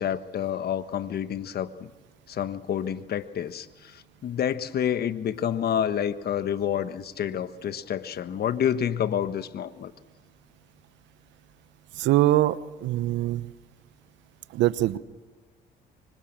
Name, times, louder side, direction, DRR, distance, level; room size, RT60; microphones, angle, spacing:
voice 1, 0.0-1.9 2.3-9.9, left 9 dB, 60° left, 12 dB, 1.4 m, -28 dB
voice 2, 12.0-13.5 14.5-15.0, right 15 dB, 80° right, 15 dB, 1.0 m, -23 dB
25.5 x 24.5 x 7.5 m, 1.4 s
supercardioid pair, 75°, 19 cm